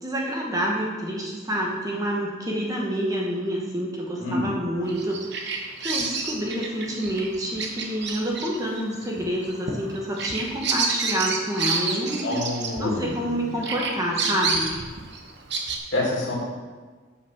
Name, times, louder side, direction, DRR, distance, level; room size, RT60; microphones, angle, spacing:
voice 1, 0.0-12.4 12.8-14.7, equal, 15° right, -2 dB, 1.1 m, -28 dB
voice 2, 4.2-4.5 12.2-13.9 15.9-16.3, left 2 dB, 60° left, -3 dB, 2.3 m, -28 dB
Bird vocalization bird call bird song, 4.9-13.3 13.6-15.8, right 4 dB, 55° right, 0.9 m, -29 dB
7.6 x 5.8 x 5.8 m, 1.4 s
head